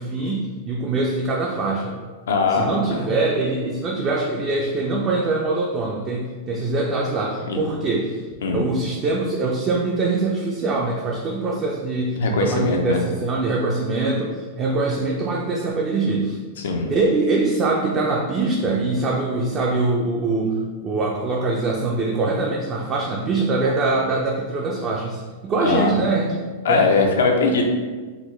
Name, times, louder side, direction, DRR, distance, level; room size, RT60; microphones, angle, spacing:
voice 1, 0.0-2.0 2.5-8.2 8.5-16.4 16.9-26.9, right 3 dB, 30° right, -1 dB, 0.4 m, -23 dB
voice 2, 2.3-3.0 7.5-7.6 8.4-8.6 12.2-13.0 16.6-16.9 25.6-26.0 26.6-27.6, left 4 dB, 90° left, 2 dB, 0.5 m, -20 dB
3.9 x 2.1 x 3.0 m, 1.4 s
supercardioid pair, 140°, 0 cm